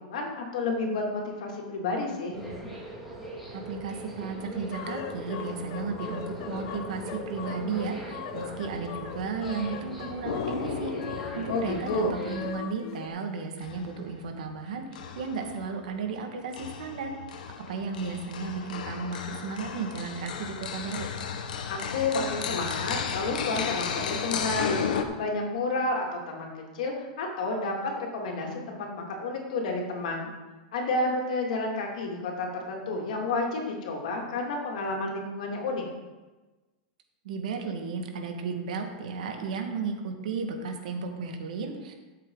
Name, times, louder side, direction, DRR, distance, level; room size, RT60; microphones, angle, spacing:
voice 1, 0.0-2.4 11.5-12.2 21.7-24.8 25.2-30.3 30.7-35.8, left 2 dB, 65° left, 0 dB, 2.5 m, -30 dB
sound 1, 2.3-12.5, equal, ahead, 2.2 m, -40 dB
voice 2, 3.5-10.9 11.4-21.1 37.2-41.9, right 5 dB, 65° right, 4 dB, 1.8 m, -34 dB
sound 2, 4.7-13.1, left 8 dB, 45° left, 0.7 m, -40 dB
sound 3, 10.2-12.8 13.6-14.5 14.9-15.9 16.5-25.0, left 7 dB, 80° left, 1.2 m, -34 dB
12.5 x 7.7 x 3.9 m, 1.2 s
supercardioid pair, 180°, 4 cm